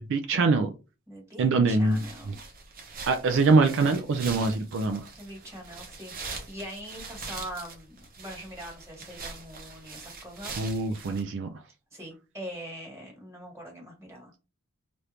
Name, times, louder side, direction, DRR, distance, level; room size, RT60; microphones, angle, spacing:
voice 1, 0.1-0.7 1.4-2.0 3.1-5.1 10.6-11.5, right 3 dB, 60° right, 0.4 m, -23 dB
voice 2, 1.1-2.4 5.2-10.6 11.9-14.4, equal, 15° right, 1.5 m, -42 dB
sound 1, 1.8-11.2, right 4 dB, 45° right, 0.8 m, -42 dB
3.4 x 2.5 x 2.9 m
head